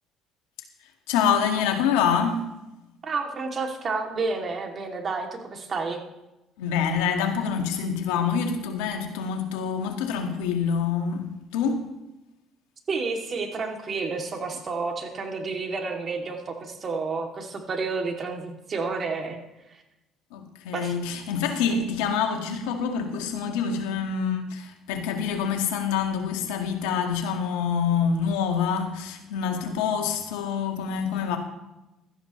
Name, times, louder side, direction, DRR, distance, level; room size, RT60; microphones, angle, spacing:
voice 1, 1.1-2.4 6.6-11.8 20.3-31.4, left 6 dB, 85° left, 1.9 m, -26 dB
voice 2, 3.0-6.0 12.9-19.4 19.7-19.8 20.7-20.9, right 4 dB, 40° right, 2.8 m, -30 dB
16.0 x 13.0 x 3.2 m
supercardioid pair, 70°, 0 cm